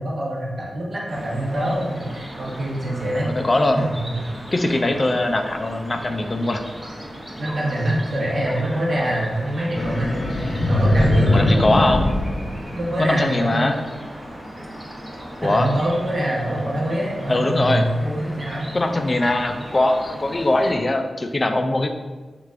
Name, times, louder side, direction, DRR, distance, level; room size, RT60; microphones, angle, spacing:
voice 1, 0.0-3.3 4.1-4.2 4.6-4.7 7.4-10.2 10.7-11.6 12.8-13.7 15.4-18.7, right 1 dB, 55° right, -5 dB, 1.0 m, -24 dB
sound 1, 1.1-20.7, equal, 20° right, 0.8 m, -37 dB
voice 2, 3.2-3.8 4.5-6.6 11.3-12.1 13.0-13.8 15.4-15.7 17.3-17.9 18.7-21.9, left 2 dB, 35° left, 6 dB, 0.3 m, -21 dB
sound 2, 9.8-13.2, left 1 dB, 55° left, 0.7 m, -20 dB
3.4 x 2.4 x 3.2 m, 1.3 s
cardioid pair, 75°, 0 cm